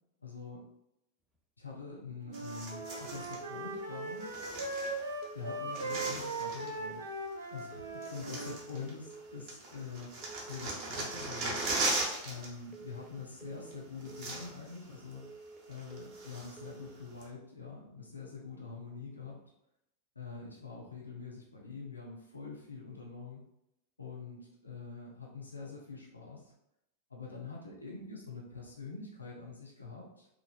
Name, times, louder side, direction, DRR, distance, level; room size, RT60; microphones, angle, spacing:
voice 1, 0.2-0.6 1.6-4.4 5.3-7.1 7.5-10.2 10.4-11.6 12.2-15.4 15.7-19.4 20.2-23.4 24.0-26.5 27.1-30.3, left 4 dB, 80° left, -2 dB, 0.5 m, -45 dB
sound 1, 2.3-3.4 4.2-5.3 5.5-6.8 7.6-7.7 8.0-9.2 9.5-12.5 12.7-13.0 13.7-13.8 14.0-14.8 15.1-15.2 15.7-16.7 17.2-17.3, right 2 dB, 35° right, 0.8 m, -38 dB
Wind instrument woodwind instrument, 2.3-8.6, right 2 dB, 75° right, 0.5 m, -39 dB
sound 2, 2.7-3.1 3.4-3.8 4.1-4.5 5.2-5.6 5.9-6.3 6.6-7.0 7.7-8.1 8.4-8.8 9.1-9.5 10.2-10.6 10.9-11.3 11.6-12.0 12.7-13.1 13.4-13.8 14.1-14.5 15.2-15.6 15.9-16.3 16.6-17.0, right 4 dB, 10° right, 0.4 m, -51 dB
3.0 x 2.3 x 2.2 m, 0.83 s
figure-of-eight pair, 90°, 0 cm